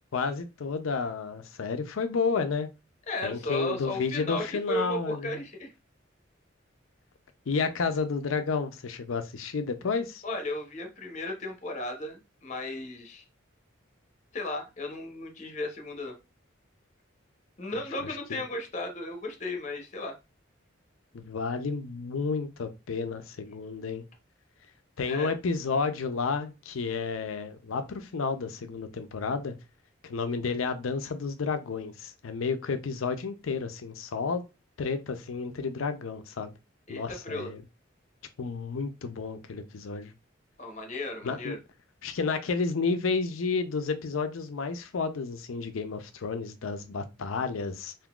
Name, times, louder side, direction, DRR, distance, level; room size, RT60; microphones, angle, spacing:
voice 1, 0.1-2.7 3.2-5.4 7.5-10.2 18.0-18.4 21.1-24.0 25.0-29.5 30.0-34.4 34.8-36.5 36.9-37.6 38.4-40.1 41.2-41.6 42.0-47.9, left 4 dB, 85° left, 0.5 m, -31 dB
voice 2, 3.1-5.7 10.2-13.2 14.3-16.2 17.6-20.1 25.0-25.3 36.9-37.5 40.6-41.6, left 1 dB, 35° left, 0.7 m, -35 dB
3.7 x 2.6 x 2.3 m
head